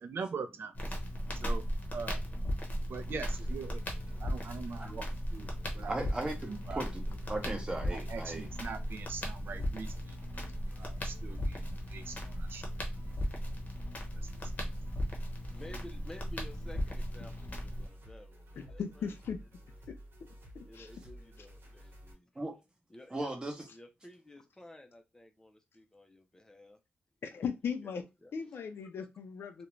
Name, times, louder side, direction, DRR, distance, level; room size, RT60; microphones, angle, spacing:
voice 1, 0.0-0.7 1.3-1.6 1.9-2.2 2.9-3.8 4.2-5.0 5.3-5.5 5.7-5.9 6.7-6.8 7.9-12.6 14.6-14.7, right 5 dB, 65° right, 0.4 m, -42 dB
Crackle, 0.7-17.9, equal, 40° left, 0.7 m, -37 dB
sound 1, 3.0-22.1, equal, 80° right, 1.0 m, -53 dB
voice 2, 5.8-8.5 22.4-22.5 23.1-23.7, right 2 dB, 20° right, 0.7 m, -37 dB
voice 3, 15.5-19.1 20.6-22.3 22.9-23.3 23.7-26.8 28.2-28.3, left 1 dB, 15° left, 0.4 m, -52 dB
voice 4, 18.6-19.4 19.9-20.0 20.5-20.9 27.2-28.0 28.3-29.7, left 6 dB, 80° left, 0.4 m, -38 dB
2.4 x 2.1 x 3.0 m
wide cardioid pair, 160°, 4 cm